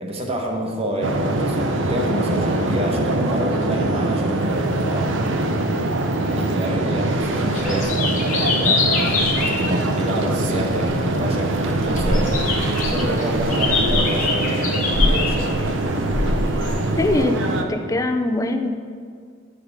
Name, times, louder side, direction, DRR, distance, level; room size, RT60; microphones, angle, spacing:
voice 1, 0.0-5.1 6.2-9.2 9.5-12.3 12.9-15.5, equal, 30° right, 0 dB, 1.0 m, -28 dB
sound 1, 1.0-17.6, right 2 dB, 65° right, 0.6 m, -23 dB
sound 2, 7.1-17.2, left 3 dB, 40° left, 1.0 m, -25 dB
voice 2, 17.0-18.7, left 2 dB, 15° left, 7 dB, 0.4 m, -22 dB
10.0 x 5.1 x 4.1 m, 2.1 s
head